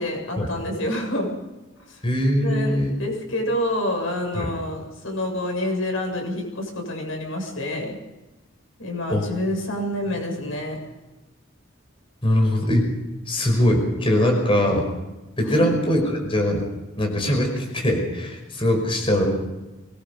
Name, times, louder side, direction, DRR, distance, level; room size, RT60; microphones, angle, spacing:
voice 1, 0.0-1.4 1.8-2.0 2.4-7.9 8.8-10.8 15.4-15.6, left 1 dB, 90° left, 2 dB, 7.5 m, -28 dB
voice 2, 2.0-3.0 4.4-4.5 9.1-9.3 12.2-12.9 13.3-14.9 15.4-16.7 17.0-19.2, left 1 dB, 25° left, 2 dB, 5.4 m, -21 dB
24.5 x 21.0 x 5.6 m, 1.1 s
head